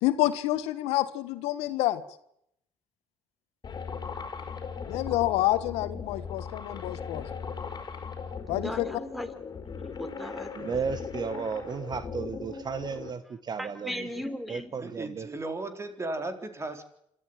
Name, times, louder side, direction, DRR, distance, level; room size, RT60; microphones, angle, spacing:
voice 1, 0.0-2.0 4.8-7.3 8.5-9.0, left 15 dB, 80° left, 12 dB, 1.6 m, -28 dB
sound 1, 3.6-13.1, left 6 dB, 40° left, 4.8 m, -38 dB
voice 2, 8.5-9.3 9.8-10.8 13.6-14.7, equal, ahead, 11 dB, 3.7 m, -37 dB
voice 3, 10.6-15.3, right 5 dB, 40° right, 13 dB, 1.4 m, -34 dB
voice 4, 14.8-16.8, right 2 dB, 25° right, 8 dB, 4.0 m, -35 dB
27.0 x 13.5 x 9.0 m, 0.75 s
supercardioid pair, 70°, 10 cm